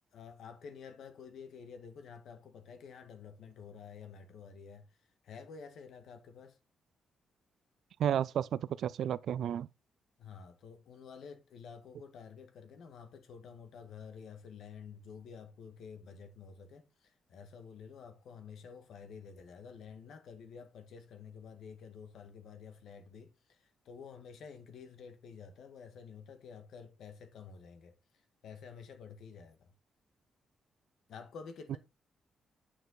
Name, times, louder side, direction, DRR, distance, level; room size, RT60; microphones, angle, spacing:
voice 1, 0.1-4.9 5.2-6.6 10.2-28.0 28.4-29.7 31.1-31.8, left 6 dB, 65° left, 2.0 m, -50 dB
voice 2, 8.0-9.7 31.7-31.8, right 10 dB, 65° right, 0.4 m, -32 dB
8.7 x 6.9 x 4.1 m
wide cardioid pair, 180°, 0 cm